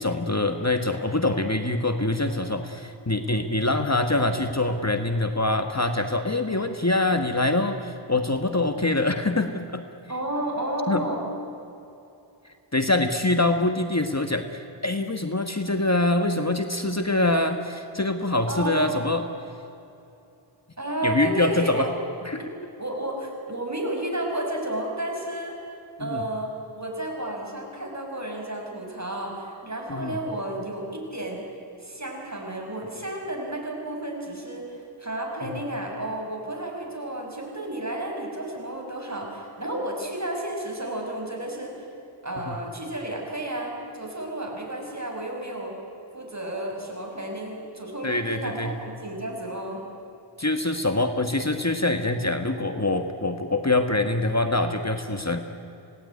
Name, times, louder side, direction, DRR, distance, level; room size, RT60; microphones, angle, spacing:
voice 1, 0.0-9.8 10.9-11.0 12.7-19.2 21.0-21.9 22.2-22.4 26.0-26.2 29.9-30.2 35.4-35.6 42.4-42.6 48.0-48.7 50.4-55.4, left 2 dB, 35° left, 6 dB, 1.4 m, -24 dB
voice 2, 10.1-11.2 18.5-19.0 20.8-21.9 22.4-22.5 22.8-25.6 26.0-31.4 31.8-41.9 42.2-45.7 46.1-49.8, right 1 dB, 35° right, 0 dB, 6.4 m, -32 dB
26.0 x 18.5 x 9.7 m, 2.8 s
wide cardioid pair, 55°, 48 cm